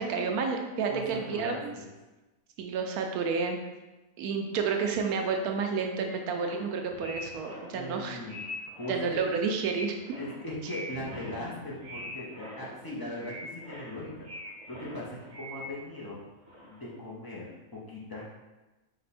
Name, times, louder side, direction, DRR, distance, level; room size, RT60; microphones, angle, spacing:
voice 1, 0.0-1.7 2.6-3.6 4.2-8.2 8.9-10.0, right 5 dB, 80° right, 3 dB, 1.1 m, -30 dB
voice 2, 0.9-1.9 7.7-9.2 10.2-14.1 14.7-16.2 16.7-17.5 17.9-18.2, left 1 dB, 30° left, -5 dB, 0.4 m, -39 dB
sound 1, 5.2-16.1 16.4-17.0, left 1 dB, 65° right, 1.4 m, -44 dB
5.2 x 2.1 x 4.2 m, 1.1 s
omnidirectional pair, 1.6 m